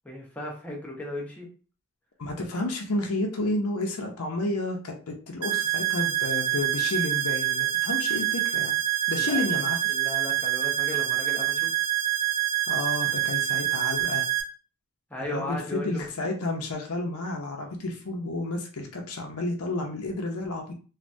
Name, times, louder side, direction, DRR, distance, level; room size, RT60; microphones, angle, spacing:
voice 1, 0.0-1.5 9.2-9.4 9.9-11.7 15.1-16.0, left 1 dB, 5° left, -2 dB, 0.7 m, -36 dB
voice 2, 2.2-8.8 9.1-9.8 12.7-14.2 15.3-20.7, left 2 dB, 80° left, 1 dB, 0.6 m, -31 dB
sound 1, 5.4-14.4, right 13 dB, 80° right, 0.6 m, -26 dB
3.2 x 2.2 x 2.6 m, 0.38 s
head